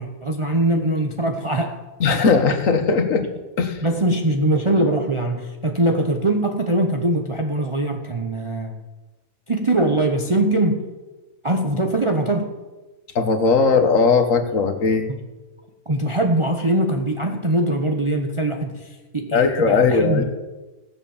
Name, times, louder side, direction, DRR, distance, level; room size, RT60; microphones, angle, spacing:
voice 1, 0.0-1.8 3.8-8.7 9.5-10.8 11.4-12.5 15.9-20.2, right 1 dB, 25° right, 3 dB, 0.9 m, -22 dB
voice 2, 2.0-3.3 3.6-3.8 13.1-15.0 19.3-20.2, left 4 dB, 70° left, 7 dB, 1.7 m, -18 dB
16.5 x 7.6 x 7.2 m, 1.2 s
omnidirectional pair, 1.4 m